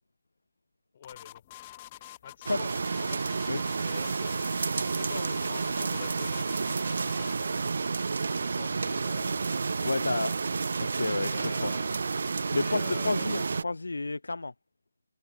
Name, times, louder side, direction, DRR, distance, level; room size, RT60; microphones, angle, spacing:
voice 1, 0.9-1.4 2.2-2.7 3.0-7.8 8.3-10.4 11.1-12.0 12.5-13.3, left 8 dB, 40° left, 4.2 m, -46 dB
sound 1, 1.0-7.5, left 15 dB, 25° left, 1.3 m, -47 dB
sound 2, 2.5-13.6, right 4 dB, 60° right, 0.5 m, -30 dB
voice 2, 9.8-10.3 10.8-11.7 12.5-14.5, left 3 dB, 75° left, 0.5 m, -30 dB
figure-of-eight pair, 155°, 0 cm